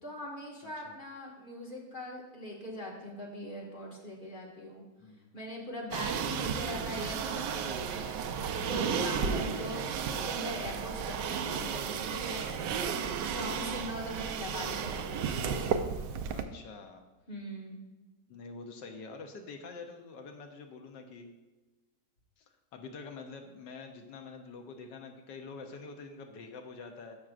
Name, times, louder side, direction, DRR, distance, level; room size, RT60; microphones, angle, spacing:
voice 1, 0.0-4.8 5.3-8.2 8.7-12.5 13.1-15.5 17.3-17.8, equal, 30° left, -3 dB, 1.7 m, -41 dB
voice 2, 0.6-0.9 5.0-5.3 16.3-17.0 18.3-21.3 22.4-22.5 22.7-27.2, left 4 dB, 75° left, 5 dB, 1.4 m, -46 dB
sound 1, 5.9-16.4, right 6 dB, 80° right, 1.2 m, -33 dB
13.5 x 5.9 x 2.5 m, 1.2 s
omnidirectional pair, 2.0 m